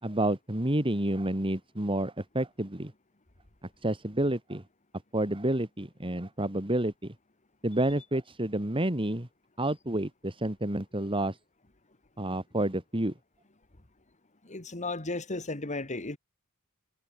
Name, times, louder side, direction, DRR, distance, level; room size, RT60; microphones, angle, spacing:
voice 1, 0.0-2.9 3.8-4.6 5.1-7.1 7.6-9.3 9.6-11.4 12.2-13.1, right 1 dB, 25° right, 2.6 m, -29 dB
voice 2, 14.4-16.2, left 2 dB, 35° left, 2.2 m, -34 dB
head